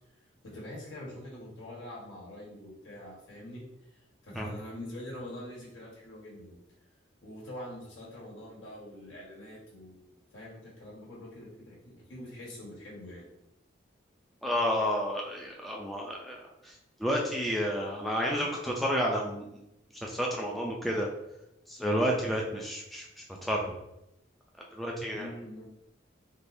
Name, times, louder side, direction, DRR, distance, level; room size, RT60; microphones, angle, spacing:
voice 1, 0.4-6.6 7.2-13.3 25.1-25.7, left 1 dB, 75° left, -5 dB, 1.3 m, -45 dB
voice 2, 14.4-16.4 16.6-16.7 17.0-19.5 20.0-21.1 21.7-23.1 23.4-23.8 24.7-25.3, equal, ahead, -2 dB, 0.3 m, -30 dB
3.4 x 3.0 x 2.6 m, 0.87 s
head